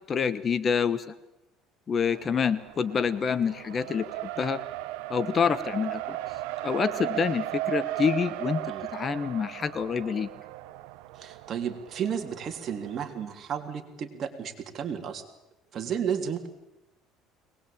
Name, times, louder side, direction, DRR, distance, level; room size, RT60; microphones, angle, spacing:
voice 1, 0.1-1.1 1.9-4.6 5.1-6.2 6.6-8.6 8.9-10.3, left 6 dB, 35° left, 15 dB, 1.2 m, -27 dB
Race car auto racing, 2.1-13.1, right 16 dB, 85° right, 1.1 m, -36 dB
voice 2, 11.1-15.2 15.7-16.5, right 8 dB, 45° right, 5 dB, 3.3 m, -33 dB
22.5 x 20.0 x 8.8 m, 0.92 s
cardioid pair, 115°, 0 cm